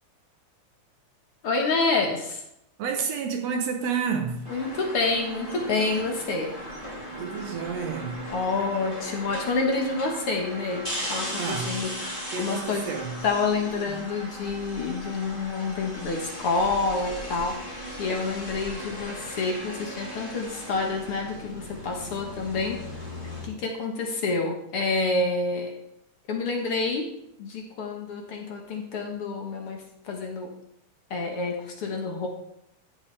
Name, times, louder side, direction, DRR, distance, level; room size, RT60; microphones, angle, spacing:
voice 1, 1.4-2.4 4.5-6.5 8.3-12.9 13.2-22.8 23.4-25.7 26.3-27.1 27.4-30.5 31.1-32.3, left 3 dB, 55° left, 1.9 m, -28 dB
voice 2, 2.8-4.4 6.9-8.2 11.4-11.8 12.3-13.2 13.9-14.0, right 6 dB, 70° right, 1.9 m, -30 dB
sound 1, 4.4-23.5, equal, 20° left, 2.1 m, -37 dB
14.5 x 7.0 x 3.3 m
omnidirectional pair, 3.4 m